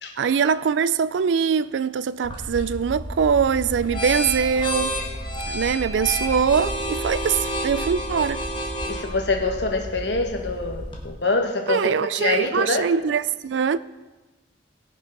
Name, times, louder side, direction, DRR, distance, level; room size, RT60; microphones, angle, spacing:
voice 1, 0.2-5.0 5.5-8.4 11.7-13.8, right 6 dB, 85° right, 0.4 m, -22 dB
sound 1, 2.2-11.1, equal, 25° left, 1.5 m, -30 dB
voice 2, 8.8-12.9, left 3 dB, 70° left, 1.3 m, -25 dB
17.5 x 6.2 x 5.3 m
head